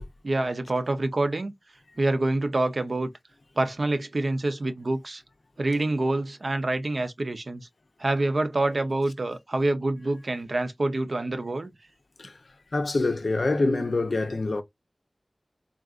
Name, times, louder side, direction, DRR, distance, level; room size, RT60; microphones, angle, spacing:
voice 1, 0.2-1.5 2.0-3.1 3.6-5.2 5.6-7.7 8.0-11.7, right 2 dB, 65° right, 0.6 m, -26 dB
voice 2, 12.7-14.6, left 2 dB, 75° left, 0.5 m, -25 dB
3.7 x 2.4 x 2.4 m
wide cardioid pair, 65°, 0 cm